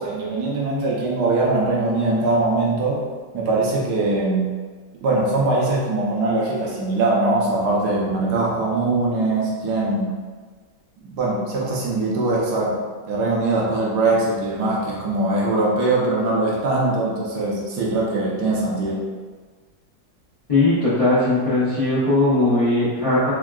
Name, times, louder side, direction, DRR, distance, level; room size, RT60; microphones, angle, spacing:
voice 1, 0.0-4.6 5.0-10.2 11.0-19.1, right 2 dB, 70° right, -4 dB, 1.1 m, -22 dB
voice 2, 20.5-23.3, left 2 dB, 70° left, -13 dB, 0.3 m, -19 dB
3.5 x 2.3 x 2.3 m, 1.4 s
omnidirectional pair, 1.9 m